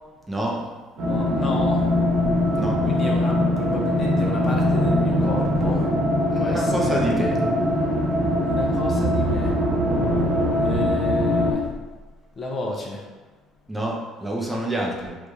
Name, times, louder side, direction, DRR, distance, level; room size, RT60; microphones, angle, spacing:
voice 1, 0.3-0.7 2.5-2.8 6.3-7.4 13.7-15.2, right 1 dB, 10° right, -2 dB, 0.7 m, -27 dB
voice 2, 1.0-1.8 2.8-5.9 6.4-7.0 8.4-9.6 10.6-11.7 12.4-13.1, left 2 dB, 40° left, -1 dB, 0.6 m, -31 dB
sound 1, 1.0-11.5, left 1 dB, 65° right, 1.4 m, -22 dB
3.2 x 2.5 x 3.4 m, 1.2 s
supercardioid pair, 90°, 0 cm